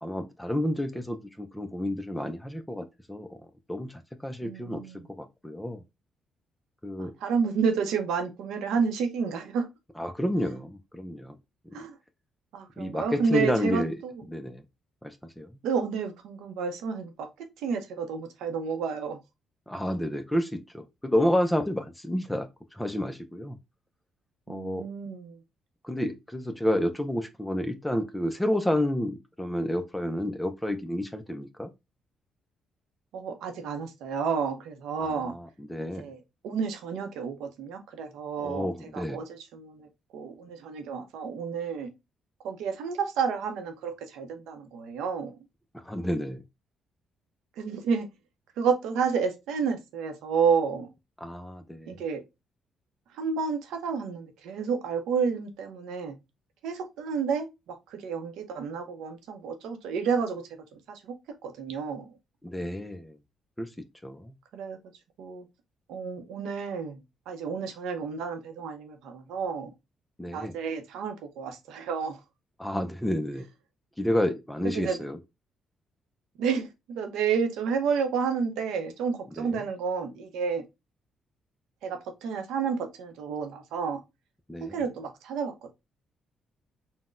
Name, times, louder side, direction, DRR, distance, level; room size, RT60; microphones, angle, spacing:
voice 1, 0.0-3.3 3.7-3.9 4.2-4.8 5.2-5.8 6.8-7.1 10.0-11.3 11.8-11.9 12.8-13.9 14.3-14.6 15.0-15.5 19.7-23.6 24.5-24.9 25.8-31.7 35.0-36.0 38.4-39.2 45.9-46.4 51.2-52.0 62.4-63.2 63.6-64.3 70.2-70.5 72.6-73.4 74.0-75.2 79.4-79.6 84.5-84.8, left 1 dB, 5° left, 0.4 m, -30 dB
voice 2, 4.4-5.1 7.0-9.7 11.7-12.0 12.5-14.2 15.6-19.2 24.5-25.4 33.1-35.4 36.0-36.2 36.4-41.9 42.4-45.4 47.6-48.1 48.6-50.9 51.9-52.2 53.1-56.2 56.6-61.1 61.4-62.1 64.5-64.8 65.2-65.4 65.9-69.7 70.3-72.2 74.6-75.0 76.4-80.6 81.8-84.0 84.6-85.7, right 6 dB, 85° right, 0.6 m, -30 dB
3.9 x 2.1 x 2.4 m
cardioid pair, 90°, 0 cm